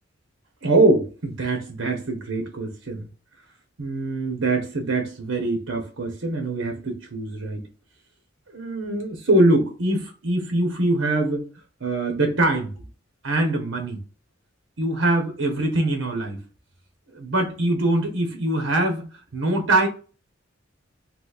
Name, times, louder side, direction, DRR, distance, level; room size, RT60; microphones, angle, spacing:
voice 1, 0.6-3.1 3.8-7.7 8.5-11.4 11.8-12.9 13.2-14.0 14.8-16.4 17.1-19.0 19.3-19.9, right 2 dB, 80° right, 0.9 m, -23 dB
3.9 x 2.5 x 2.4 m
head